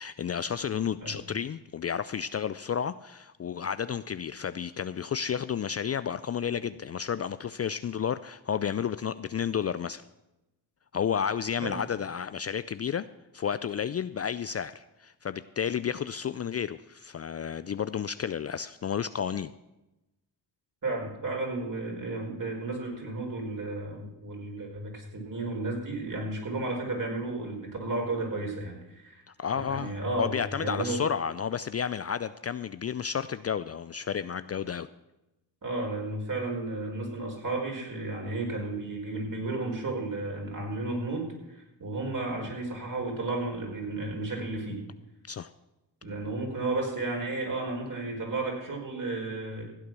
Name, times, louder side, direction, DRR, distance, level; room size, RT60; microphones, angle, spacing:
voice 1, 0.0-10.0 10.9-13.1 13.3-19.5 29.4-34.9 45.3-45.5, left 7 dB, 35° left, 14 dB, 0.4 m, -31 dB
voice 2, 20.8-29.2 29.7-31.0 35.6-44.8 46.0-49.6, right 2 dB, 45° right, 0 dB, 5.0 m, -33 dB
15.5 x 8.5 x 6.2 m, 0.96 s
cardioid pair, 65°, 44 cm